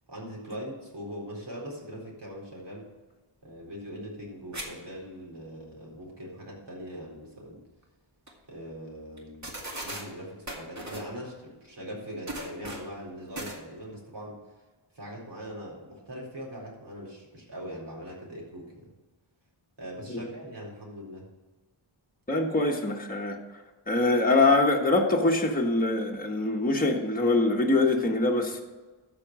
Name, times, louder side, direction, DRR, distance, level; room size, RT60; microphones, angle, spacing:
voice 1, 0.1-2.9 3.4-7.6 8.5-9.5 9.8-14.4 14.9-18.9 19.8-21.2, equal, 55° right, -3 dB, 4.2 m, -41 dB
sound 1, 4.5-4.7 5.0-5.1 7.8-7.9 8.3-8.4 9.2-9.3 9.4-10.0 10.5-11.1 12.3-12.9 13.3-13.6, right 1 dB, 35° right, 2.2 m, -37 dB
voice 2, 22.3-23.4 23.9-28.6, left 2 dB, 20° left, 0 dB, 1.4 m, -24 dB
13.0 x 5.4 x 6.2 m, 1.2 s
wide cardioid pair, 80°, 48 cm